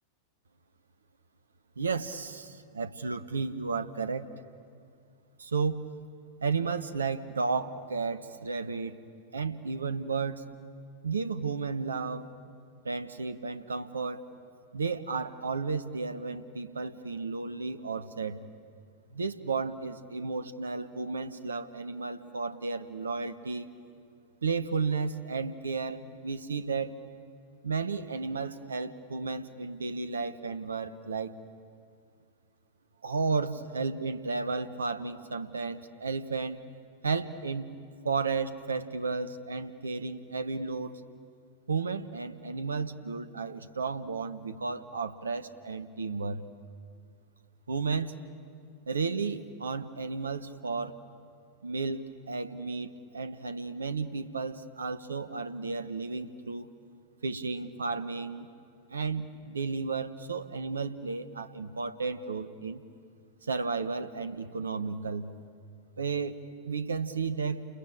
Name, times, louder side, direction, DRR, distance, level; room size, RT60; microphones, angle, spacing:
voice 1, 1.8-4.3 5.4-5.9 6.4-9.0 9.3-10.4 11.0-12.3 12.8-14.2 14.7-18.4 19.1-23.7 24.4-27.0 27.6-31.3 33.0-36.6 37.0-37.7 38.0-40.9 41.7-46.4 47.7-48.2 48.9-50.9 51.6-56.7 57.2-58.5 58.9-62.8 63.4-65.3 66.0-66.4 66.6-67.7, right 4 dB, 75° right, 12 dB, 1.1 m, -33 dB
29.5 x 22.0 x 8.9 m, 2.4 s
figure-of-eight pair, 90°, 0 cm